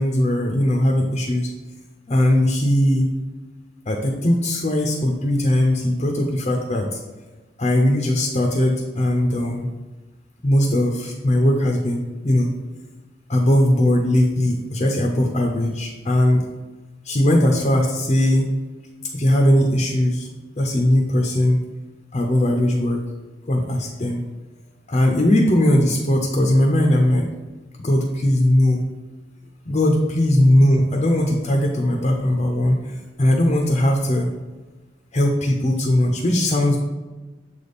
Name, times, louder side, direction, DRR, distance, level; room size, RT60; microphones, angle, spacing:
voice 1, 0.0-1.5 2.1-3.1 3.9-7.0 7.6-9.7 10.4-12.6 13.3-16.5 17.0-18.5 19.1-20.3 20.6-21.6 22.1-23.0 23.5-24.2 24.9-27.3 27.8-28.8 29.7-34.3 35.1-36.8, left 1 dB, 35° left, 2 dB, 0.6 m, -19 dB
7.2 x 3.4 x 4.1 m, 1.3 s
head